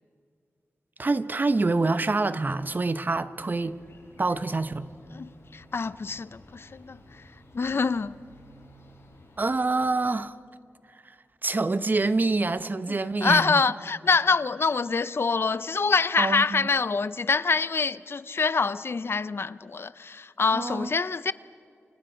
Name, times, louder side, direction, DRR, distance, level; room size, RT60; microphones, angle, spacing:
voice 1, 1.0-3.8 4.2-4.9 9.4-10.3 11.4-13.6 16.2-16.7 20.5-20.9, right 3 dB, 40° right, 0.8 m, -26 dB
sound 1, 3.5-9.4, left 1 dB, 80° left, 7.9 m, -53 dB
voice 2, 5.1-7.2 7.5-8.1 13.2-21.3, left 4 dB, 60° left, 0.6 m, -25 dB
28.0 x 24.5 x 5.1 m
wide cardioid pair, 65°, 5 cm